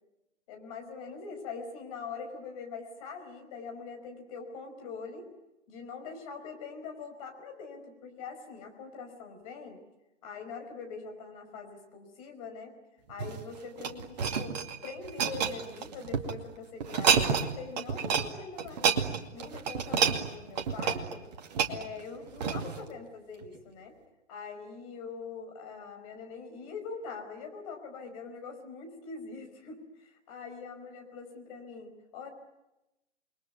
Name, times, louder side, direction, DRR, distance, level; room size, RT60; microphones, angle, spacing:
voice 1, 0.5-5.3 5.7-9.8 10.2-12.7 13.1-14.6 14.8-21.2 21.7-23.9 24.3-32.3, left 5 dB, 30° left, 3 dB, 5.2 m, -43 dB
sound 1, 13.1-16.3 16.8-17.5 17.8-18.3 18.6-22.8 23.4-23.6, right 6 dB, 35° right, 2.3 m, -29 dB
29.0 x 22.0 x 9.4 m, 0.96 s
figure-of-eight pair, 130°, 36 cm